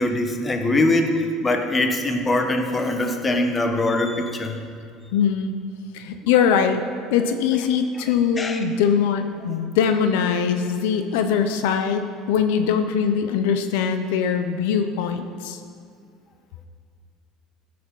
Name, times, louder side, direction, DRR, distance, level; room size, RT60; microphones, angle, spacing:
voice 1, 0.0-4.6 8.4-8.6, left 2 dB, 20° left, 5 dB, 1.2 m, -22 dB
voice 2, 5.1-5.6 5.9-6.8 7.1-15.6, left 7 dB, 85° left, 8 dB, 0.7 m, -22 dB
14.0 x 7.8 x 5.4 m, 2.2 s
supercardioid pair, 120°, 0 cm